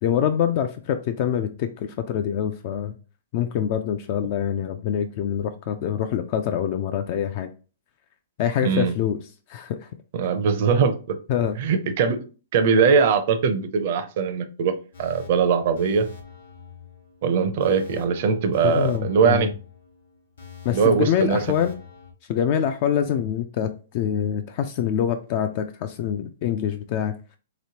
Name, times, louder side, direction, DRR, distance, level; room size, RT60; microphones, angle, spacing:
voice 1, 0.0-3.0 3.3-7.5 8.4-9.2 9.5-9.9 11.3-11.6 18.6-19.5 20.6-21.7 22.3-27.2, left 9 dB, 45° left, 0.3 m, -25 dB
voice 2, 8.6-8.9 10.1-11.2 11.6-12.2 12.5-16.1 17.2-19.5 20.7-21.4, right 6 dB, 50° right, 0.5 m, -21 dB
sound 1, 14.9-22.1, left 7 dB, 75° left, 0.9 m, -44 dB
3.2 x 3.0 x 2.8 m
hypercardioid pair, 145°, 0 cm